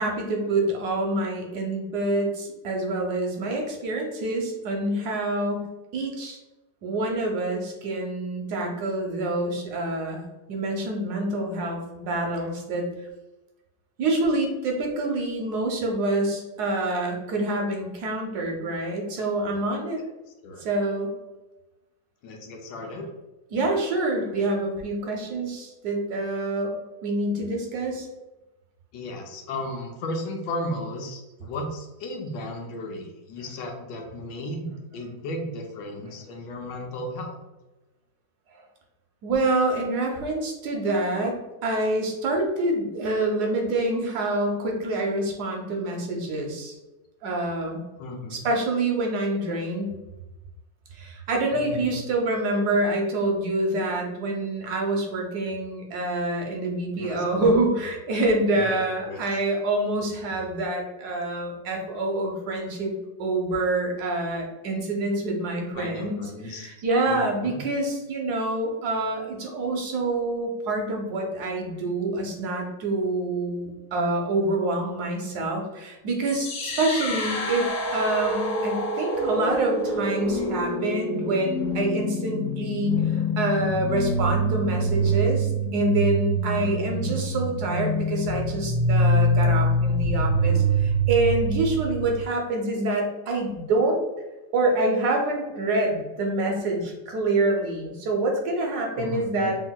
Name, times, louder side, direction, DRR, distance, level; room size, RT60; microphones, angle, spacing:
voice 1, 0.0-5.6 5.9-6.4 6.8-10.2 10.5-12.8 14.0-20.0 20.6-21.1 23.5-26.7 27.0-28.1 39.2-41.3 41.6-46.8 47.2-47.8 48.3-49.9 50.9-62.9 63.2-94.0 94.5-99.6, right 2 dB, 70° right, 1 dB, 1.1 m, -26 dB
voice 2, 22.2-23.1 28.9-37.3 48.0-48.4 51.5-52.0 57.0-57.2 58.6-59.2 65.7-66.7 67.1-67.6 86.6-86.7 87.0-87.1 98.9-99.5, left 1 dB, 85° left, 2 dB, 1.3 m, -35 dB
sound 1, 76.2-92.2, right 1 dB, 60° left, 1.4 m, -25 dB
3.0 x 2.8 x 2.2 m, 1.0 s
omnidirectional pair, 1.9 m